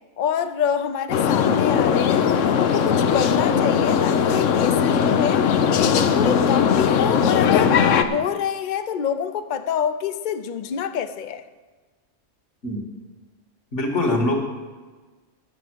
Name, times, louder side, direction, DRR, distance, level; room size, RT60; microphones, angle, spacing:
voice 1, 0.2-5.5 5.7-7.8 8.1-11.4, left 8 dB, 50° left, 0.7 m, -27 dB
sound 1, 1.1-8.0, left 7 dB, 90° left, 1.1 m, -19 dB
voice 2, 13.7-14.4, left 1 dB, 70° left, 2.5 m, -22 dB
11.5 x 7.1 x 7.9 m
omnidirectional pair, 1.3 m